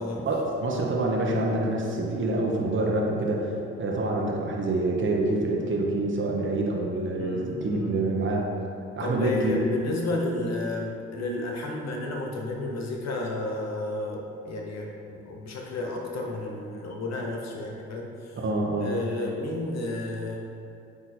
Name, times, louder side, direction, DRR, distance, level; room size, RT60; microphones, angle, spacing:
voice 1, 0.3-8.5 9.0-9.6 18.4-19.0, right 2 dB, 40° right, -1 dB, 1.0 m, -26 dB
voice 2, 7.2-8.1 9.0-18.4 18.8-20.4, left 2 dB, 60° left, 0 dB, 1.0 m, -32 dB
8.4 x 2.9 x 4.3 m, 2.7 s
supercardioid pair, 55°, 31 cm